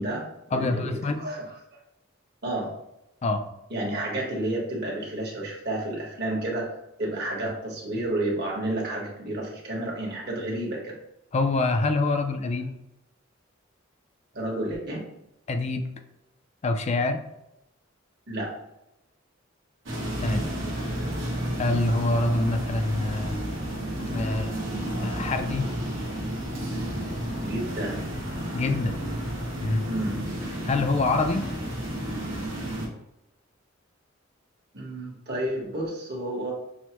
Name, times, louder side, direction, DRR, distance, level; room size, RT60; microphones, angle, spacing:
voice 1, 0.0-1.4 2.4-2.7 3.7-11.0 14.3-15.0 18.3-18.5 27.4-28.0 29.9-30.2 34.7-36.5, right 1 dB, 55° right, -2 dB, 1.3 m, -31 dB
voice 2, 0.5-1.3 3.2-3.5 11.3-12.8 15.5-15.9 16.6-17.2 20.2-20.5 21.6-23.4 24.1-24.6 25.0-25.7 28.5-29.0 29.6-29.9 30.6-31.5, left 2 dB, 35° left, 7 dB, 0.4 m, -25 dB
sound 1, 19.9-32.9, right 1 dB, 75° right, 1.1 m, -31 dB
6.2 x 2.1 x 2.9 m, 0.88 s
head